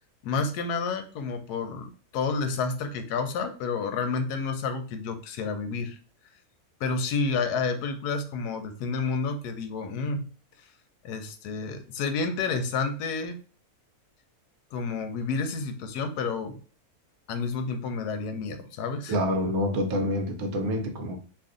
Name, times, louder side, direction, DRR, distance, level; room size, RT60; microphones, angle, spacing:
voice 1, 0.2-6.0 6.8-10.3 11.0-13.4 14.7-16.6 17.3-19.2, left 4 dB, 90° left, 7 dB, 1.1 m, -30 dB
voice 2, 19.1-21.2, equal, 70° right, 4 dB, 1.1 m, -27 dB
2.8 x 2.5 x 3.7 m, 0.38 s
omnidirectional pair, 1.7 m